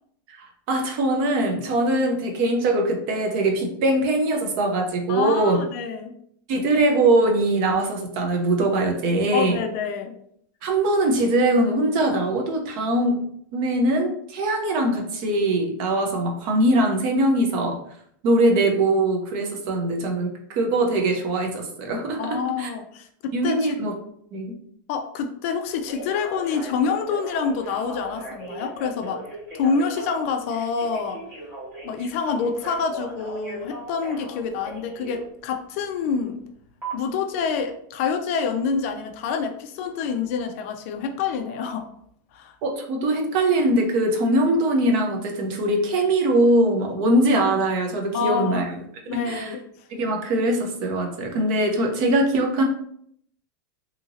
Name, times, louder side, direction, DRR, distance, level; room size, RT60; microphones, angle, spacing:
voice 1, 0.7-5.6 6.5-9.6 10.6-13.2 13.5-17.8 18.2-22.7 23.3-23.9 24.3-24.5 42.6-48.8 49.1-49.5 49.9-52.6, right 1 dB, 40° right, 3 dB, 0.6 m, -22 dB
voice 2, 5.1-6.1 9.3-10.1 22.2-23.8 24.9-29.2 29.5-31.2 31.8-36.4 36.9-41.8 42.3-42.5 48.1-48.7 49.1-49.6, left 5 dB, 40° left, 5 dB, 0.3 m, -27 dB
Telephone, 25.7-35.2 36.8-36.9, right 2 dB, 25° right, 1.2 m, -38 dB
2.8 x 2.6 x 2.8 m, 0.67 s
supercardioid pair, 165°, 11 cm